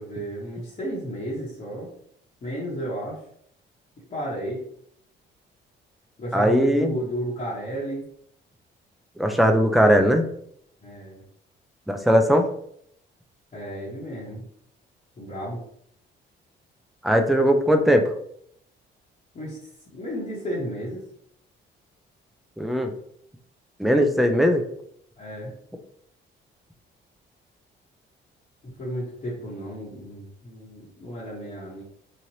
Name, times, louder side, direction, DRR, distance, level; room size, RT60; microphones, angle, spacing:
voice 1, 0.0-1.9 2.4-3.2 4.1-4.6 6.2-8.0 10.8-11.2 13.5-14.4 15.2-15.6 19.3-19.6 19.9-21.0 25.2-25.5 28.6-31.8, equal, 40° left, -7 dB, 1.2 m, -32 dB
voice 2, 6.3-6.9 9.2-10.2 11.9-12.4 17.0-18.0 22.6-22.9 23.8-24.6, equal, ahead, 4 dB, 0.4 m, -19 dB
3.2 x 2.5 x 2.8 m, 0.67 s
cardioid pair, 90°, 20 cm